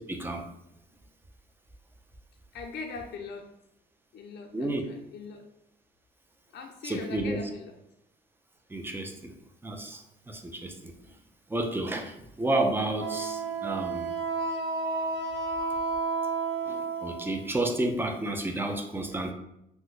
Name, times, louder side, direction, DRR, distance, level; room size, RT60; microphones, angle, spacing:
voice 1, 0.1-0.5 4.5-4.8 6.8-7.4 8.7-9.3 9.6-10.9 11.5-14.1 15.6-15.7 16.7-19.3, right 2 dB, 10° right, 4 dB, 0.4 m, -31 dB
voice 2, 2.5-3.5 4.1-5.4 6.5-7.8, left 4 dB, 55° left, 2 dB, 0.4 m, -41 dB
Wind instrument woodwind instrument, 13.0-17.4, right 4 dB, 65° right, 0.5 m, -31 dB
3.3 x 2.1 x 3.1 m, 0.81 s
cardioid pair, 90°, 20 cm